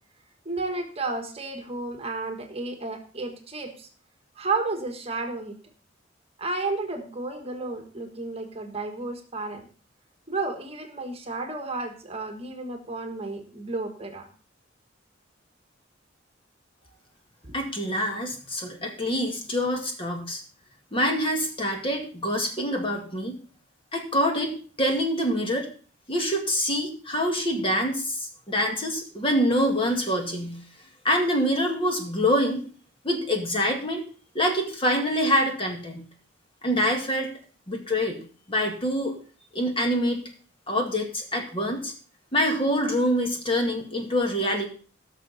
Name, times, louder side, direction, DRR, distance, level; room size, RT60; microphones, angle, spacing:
voice 1, 0.4-3.9 4.4-5.6 6.4-9.6 10.3-14.3 17.4-17.5, right 3 dB, 30° right, 4 dB, 1.5 m, -32 dB
voice 2, 17.5-20.4 20.9-23.4 23.9-25.7 26.1-30.6 31.0-32.6 33.0-34.0 34.3-36.0 36.6-37.3 37.7-38.2 38.5-39.1 39.5-40.2 40.7-41.9 42.3-44.7, equal, 30° left, 2 dB, 2.0 m, -25 dB
17.0 x 6.6 x 4.1 m, 0.40 s
head